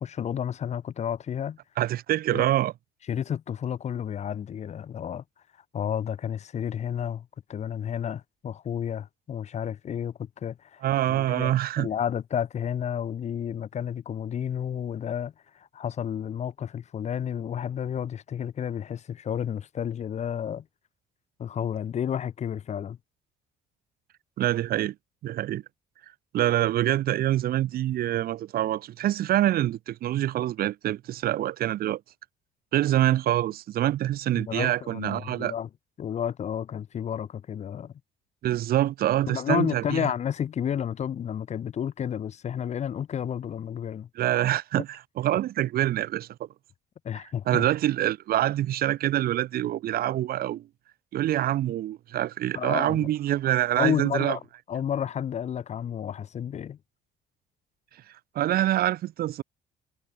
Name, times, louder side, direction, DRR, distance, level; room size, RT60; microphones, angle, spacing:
voice 1, 0.0-1.6 2.3-2.5 3.1-5.2 5.7-10.8 11.1-15.3 15.7-20.6 21.4-23.0 34.3-35.7 36.0-37.9 39.3-44.1 47.0-47.6 52.5-53.1 53.8-54.4 54.7-56.8, left 9 dB, 40° left, 0.8 m, -31 dB
voice 2, 1.8-2.7 10.8-11.9 24.4-24.9 25.2-25.6 26.3-32.0 32.7-35.5 38.4-40.1 44.1-46.3 47.5-50.7 51.1-54.4 58.3-59.4, right 13 dB, 65° right, 1.1 m, -25 dB
cardioid pair, 110°, 17 cm